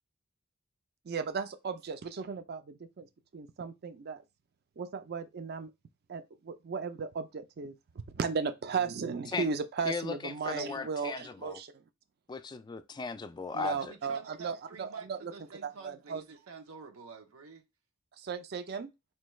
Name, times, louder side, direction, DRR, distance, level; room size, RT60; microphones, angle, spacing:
voice 1, 1.0-3.1 3.3-4.2 4.8-5.7 6.1-7.8 8.1-11.8 13.5-15.3 15.6-16.2 18.2-18.9, right 5 dB, 50° right, 0.4 m, -36 dB
voice 2, 9.9-11.6 12.3-13.8, left 4 dB, 20° left, 0.3 m, -37 dB
voice 3, 13.6-17.6, right 4 dB, 80° right, 0.7 m, -48 dB
4.4 x 2.3 x 3.1 m
head